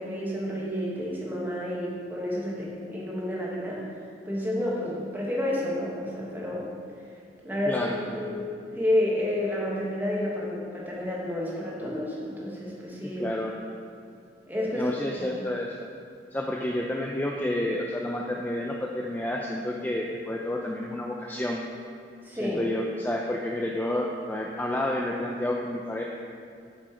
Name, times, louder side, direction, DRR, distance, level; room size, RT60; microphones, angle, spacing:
voice 1, 0.0-3.9 4.2-6.7 7.4-7.8 8.1-8.5 8.8-13.2 14.5-14.9 15.2-15.4 22.2-22.6, left 1 dB, 10° right, -5 dB, 1.2 m, -30 dB
voice 2, 7.7-8.4 13.0-13.6 14.7-15.9 16.3-21.7 22.4-26.0, left 1 dB, 10° left, -1 dB, 0.3 m, -30 dB
7.3 x 4.9 x 4.5 m, 2.3 s
head